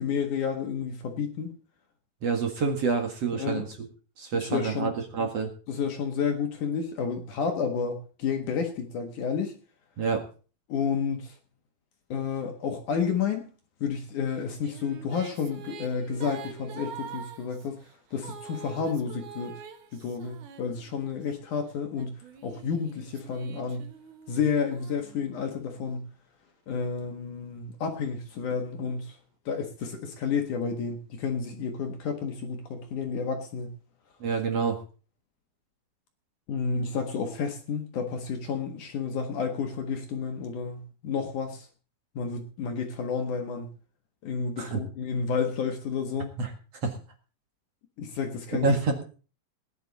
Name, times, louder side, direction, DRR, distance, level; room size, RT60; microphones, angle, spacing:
voice 1, 0.0-1.5 3.3-3.7 4.3-4.9 5.7-9.6 10.7-11.4 12.1-13.5 13.8-17.8 18.1-19.6 19.9-23.9 24.3-26.1 26.7-29.2 29.5-33.8 36.5-41.7 42.2-43.7 44.2-46.4 48.0-48.7, left 6 dB, 60° left, 2.2 m, -31 dB
voice 2, 2.2-3.9 4.2-5.5 10.0-10.2 34.2-34.8 44.6-44.8 46.4-46.5 46.8-47.0 48.6-49.0, right 4 dB, 50° right, 2.0 m, -27 dB
Female singing, 14.3-21.2 21.9-25.7, right 6 dB, 75° right, 1.8 m, -45 dB
19.0 x 10.5 x 4.1 m
omnidirectional pair, 5.2 m